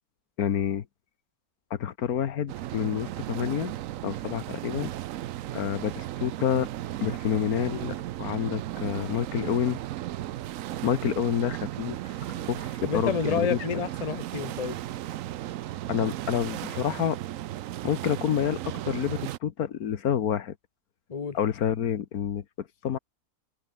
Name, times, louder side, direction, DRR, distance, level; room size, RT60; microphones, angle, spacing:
voice 1, 0.4-0.8 1.7-3.7 4.0-4.9 5.5-6.7 7.0-9.8 10.8-13.6 15.9-17.2 17.8-20.5 21.3-23.0, left 9 dB, 70° left, 1.5 m, -28 dB
sound 1, 2.5-19.4, right 14 dB, 65° right, 0.9 m, -35 dB
voice 2, 12.8-14.8 21.1-21.4, left 6 dB, 30° left, 1.0 m, -29 dB
omnidirectional pair, 1.6 m